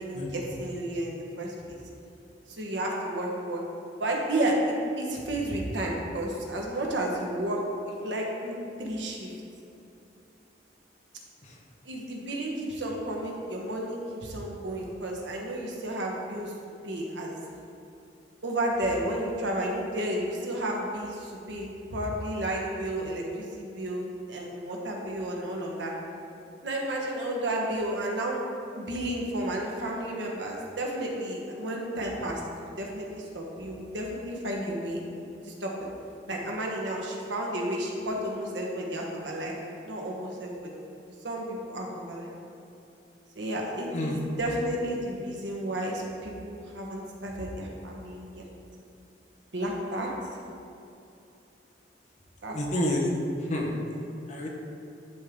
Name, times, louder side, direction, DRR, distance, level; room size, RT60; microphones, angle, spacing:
voice 1, 0.0-1.8 2.5-3.6 4.0-7.6 8.0-8.5 8.8-9.3 11.8-16.5 16.8-17.3 18.4-21.6 21.9-25.9 26.6-28.4 28.7-32.4 32.8-35.0 35.5-35.7 36.3-39.6 39.8-40.7 41.2-42.3 43.4-48.5 49.5-50.1 52.4-52.5, right 1 dB, 90° right, -1 dB, 1.1 m, -32 dB
voice 2, 52.5-53.1 53.4-53.7 54.3-54.5, left 1 dB, 40° left, -1 dB, 1.0 m, -29 dB
10.5 x 3.7 x 3.6 m, 2.7 s
head